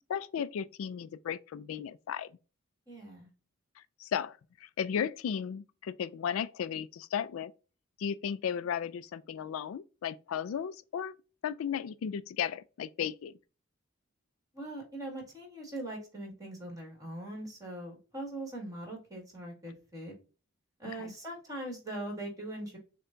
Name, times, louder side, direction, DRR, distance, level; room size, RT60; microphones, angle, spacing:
voice 1, 0.1-2.3 3.8-7.5 8.0-11.1 11.4-13.3 20.8-21.1, left 8 dB, 80° left, 0.3 m, -35 dB
voice 2, 2.9-3.3 14.5-20.1 20.8-22.8, right 1 dB, 15° right, 1.8 m, -41 dB
6.6 x 2.2 x 2.5 m
head